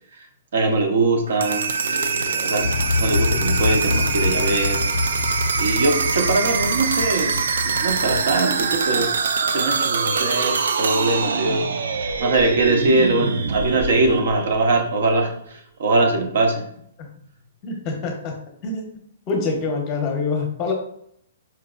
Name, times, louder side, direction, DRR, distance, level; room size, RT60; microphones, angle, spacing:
voice 1, 0.5-2.7 3.0-4.9 5.6-9.1 9.5-16.7, right 2 dB, 60° right, 4 dB, 0.8 m, -22 dB
sound 1, 1.3-15.1, right 5 dB, 85° right, 0.4 m, -24 dB
sound 2, 2.6-8.4, left 3 dB, 90° left, 0.4 m, -26 dB
voice 2, 17.6-18.3 18.6-18.9 19.3-20.7, left 4 dB, 25° left, 1 dB, 0.8 m, -25 dB
4.6 x 2.9 x 2.4 m, 0.67 s
hypercardioid pair, 170°, 0 cm